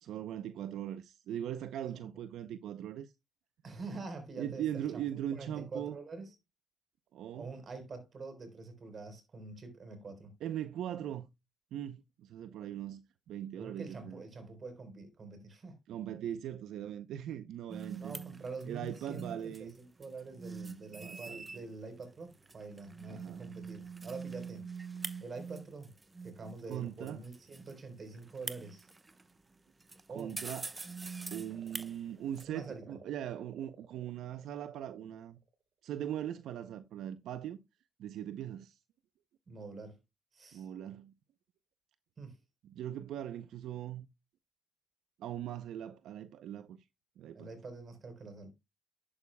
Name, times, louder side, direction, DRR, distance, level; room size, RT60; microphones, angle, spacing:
voice 1, 0.0-3.1 4.4-6.0 7.1-7.5 10.4-11.3 11.7-13.0 13.3-14.2 15.9-18.2 18.7-19.7 20.9-21.6 23.1-23.5 26.7-27.2 30.1-30.7 31.3-35.4 35.8-37.6 38.0-38.8 40.5-41.1 42.6-44.1 45.2-46.8 47.2-47.5, right 10 dB, 80° right, 0.6 m, -40 dB
voice 2, 1.9-2.2 3.6-5.0 5.3-6.4 7.3-10.3 13.6-15.8 18.0-24.6 25.2-25.9 26.2-28.9 30.1-30.4 32.5-33.0 39.5-40.0 40.3-40.7 42.2-42.4 47.3-48.5, right 3 dB, 40° right, 3.9 m, -46 dB
sound 1, 17.7-32.4, right 4 dB, 20° right, 0.9 m, -46 dB
sound 2, 31.5-35.5 36.7-37.1, right 6 dB, 60° right, 3.9 m, -58 dB
11.0 x 8.7 x 2.2 m
cardioid pair, 90°, 0 cm